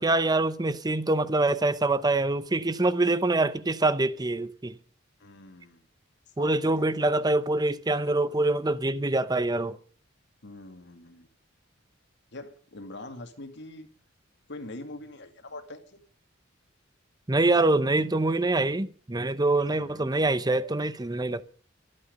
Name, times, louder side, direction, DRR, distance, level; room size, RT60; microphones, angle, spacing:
voice 1, 0.0-4.8 6.4-9.8 17.3-21.4, right 2 dB, 20° right, 0.7 m, -25 dB
voice 2, 5.2-5.9 6.4-7.2 10.4-11.3 12.3-13.9 14.5-16.0 19.7-20.1, left 2 dB, 60° left, 2.3 m, -44 dB
24.5 x 8.7 x 5.3 m
head